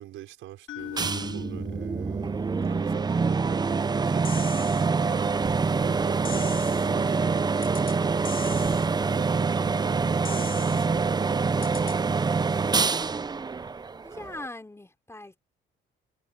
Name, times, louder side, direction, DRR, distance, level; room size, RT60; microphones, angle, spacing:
voice 1, 0.0-8.2 9.0-13.0, right 14 dB, 90° right, 5.7 m, -44 dB
sound 1, 0.7-4.7, left 12 dB, 75° left, 2.6 m, -43 dB
sound 2, 1.0-14.5, right 4 dB, 20° right, 0.5 m, -25 dB
sound 3, 4.2-4.9 6.2-6.9 7.6-8.0 8.2-8.9 10.2-10.9 11.6-12.0, left 8 dB, 45° left, 0.9 m, -39 dB
voice 2, 14.0-15.4, left 2 dB, 15° left, 3.6 m, -40 dB
cardioid pair, 90°, 20 cm